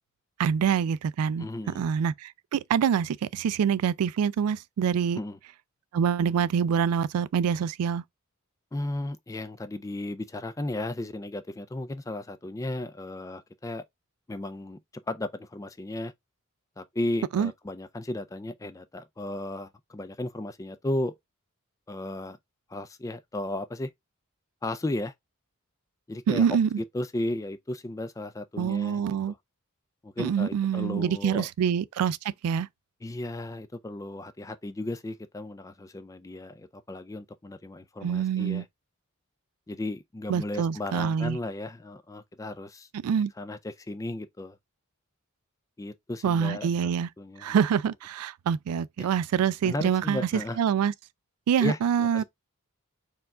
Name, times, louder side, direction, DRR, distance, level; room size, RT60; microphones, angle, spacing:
voice 1, 0.4-1.5 1.7-5.2 5.9-8.0 17.3-17.5 26.3-26.8 28.6-29.3 30.2-32.2 32.4-32.7 38.0-38.6 40.3-41.4 43.0-43.3 46.2-47.1 47.4-50.3 50.6-50.9 51.5-52.2, right 7 dB, 85° right, 0.3 m, -25 dB
voice 2, 1.4-1.8 5.2-5.4 8.7-13.8 14.3-14.8 15.1-16.1 16.8-21.1 21.9-22.4 22.7-23.9 24.6-25.1 26.1-26.5 26.9-29.4 30.0-31.5 33.0-38.7 39.7-42.9 43.4-44.6 45.8-46.9 47.2-47.6 49.0-49.1 49.6-50.6 51.6-52.2, left 1 dB, 15° left, 0.3 m, -35 dB
4.5 x 2.3 x 3.6 m
head